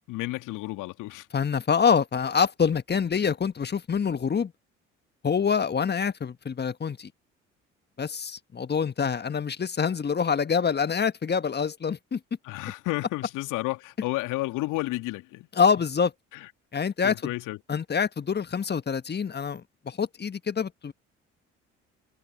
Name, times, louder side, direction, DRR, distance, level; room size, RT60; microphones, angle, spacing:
voice 1, 0.1-1.3 12.4-15.5 16.3-16.5 17.0-17.6, left 19 dB, 60° left, 2.8 m, -31 dB
voice 2, 1.3-4.5 5.2-7.1 8.0-12.2 15.6-16.1 16.7-17.3 17.7-20.9, left 6 dB, 30° left, 1.5 m, -26 dB
figure-of-eight pair, 50°, 35 cm